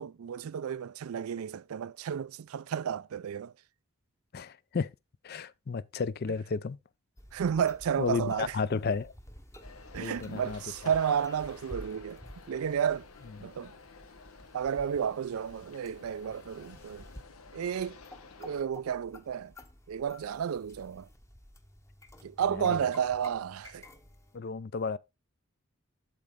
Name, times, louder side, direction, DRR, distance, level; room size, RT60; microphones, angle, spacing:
voice 1, 0.0-3.5 7.3-8.6 9.9-12.2 12.5-13.0 13.4-13.7 14.5-17.0 17.5-18.0 18.4-19.5 19.9-21.1 22.2-23.9, right 8 dB, 85° right, 0.4 m, -32 dB
voice 2, 4.3-4.9 5.2-6.8 8.0-9.1 10.0-10.6 13.4-13.5 22.5-22.9 24.3-25.0, left 5 dB, 45° left, 0.4 m, -33 dB
sound 1, 7.2-24.4, left 1 dB, 15° left, 0.9 m, -52 dB
sound 2, 9.6-18.6, left 4 dB, 90° left, 1.0 m, -52 dB
12.0 x 4.1 x 3.6 m
head